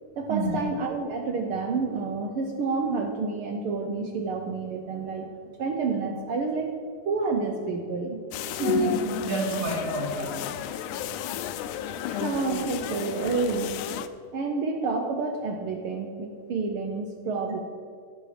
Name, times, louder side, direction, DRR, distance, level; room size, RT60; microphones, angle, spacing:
voice 1, 0.2-5.3 5.6-8.2 12.0-13.8 14.3-17.6, right 4 dB, 75° right, 3 dB, 1.2 m, -29 dB
sound 1, 8.3-14.1, left 6 dB, 90° left, 2.1 m, -32 dB
voice 2, 8.5-10.5 11.2-11.3, right 2 dB, 55° right, -2 dB, 3.7 m, -29 dB
12.0 x 10.5 x 5.0 m, 2.2 s
omnidirectional pair, 3.5 m